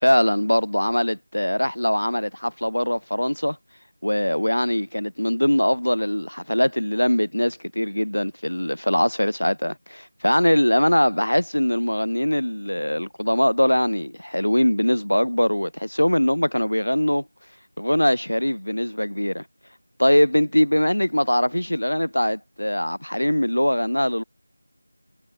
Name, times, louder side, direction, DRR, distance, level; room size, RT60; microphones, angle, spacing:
voice 1, 0.0-3.6 4.0-17.2 17.8-19.4 20.0-24.2, left 1 dB, 75° left, 1.4 m, -22 dB
figure-of-eight pair, 170°, 0 cm